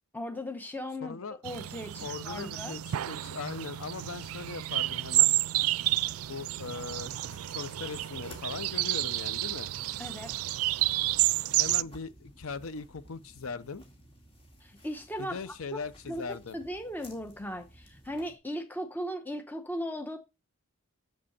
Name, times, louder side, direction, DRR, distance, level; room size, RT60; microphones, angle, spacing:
voice 1, 0.1-2.7 10.0-10.3 14.6-15.4 16.1-20.2, equal, 10° left, 0.9 m, -37 dB
voice 2, 1.0-1.4 2.0-5.3 6.3-7.1 7.5-9.7 11.6-13.8 15.2-16.6, left 4 dB, 70° left, 0.7 m, -39 dB
sound 1, 1.4-11.8, right 17 dB, 80° right, 0.3 m, -30 dB
sound 2, 5.4-18.4, equal, 25° left, 2.4 m, -55 dB
7.6 x 7.4 x 4.3 m
head